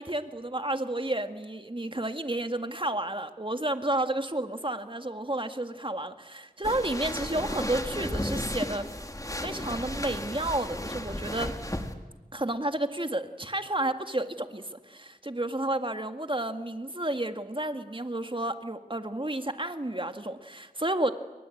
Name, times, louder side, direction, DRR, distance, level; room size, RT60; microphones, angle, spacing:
voice 1, 0.0-8.8 9.4-11.5 12.3-21.1, right 1 dB, 35° right, 7 dB, 2.0 m, -31 dB
sound 1, 6.6-11.9, left 1 dB, 20° left, 2.4 m, -34 dB
29.5 x 23.5 x 8.7 m, 1.2 s
wide cardioid pair, 45°, 16 cm